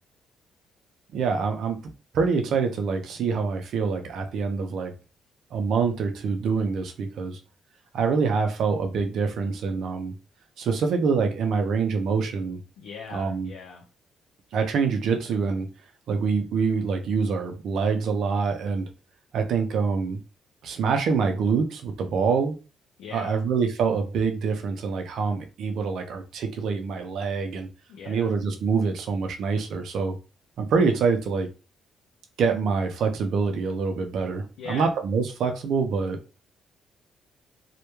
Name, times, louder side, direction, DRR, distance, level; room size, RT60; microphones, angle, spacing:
voice 1, 1.1-1.8 2.1-4.9 5.5-7.4 7.9-10.1 10.6-12.6 13.1-13.5 14.5-15.7 16.1-18.9 19.3-20.2 20.6-22.6 23.1-27.7 28.0-30.2 30.6-31.5 32.4-36.2, right 5 dB, 70° right, 0.4 m, -25 dB
voice 2, 12.8-13.8 23.0-23.3 27.9-28.3 34.6-34.9, left 5 dB, 85° left, 0.4 m, -40 dB
2.1 x 2.1 x 3.0 m
cardioid pair, 90°, 0 cm